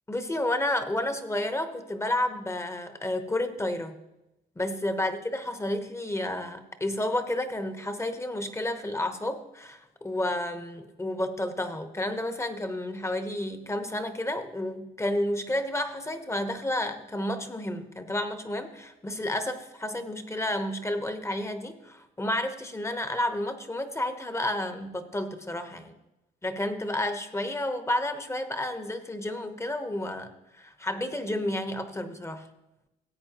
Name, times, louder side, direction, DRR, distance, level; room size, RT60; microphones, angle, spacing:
voice 1, 0.1-4.0 4.6-25.9 26.4-32.5, left 1 dB, 15° left, 8 dB, 1.0 m, -31 dB
16.5 x 8.4 x 3.0 m, 0.95 s
cardioid pair, 90°, 20 cm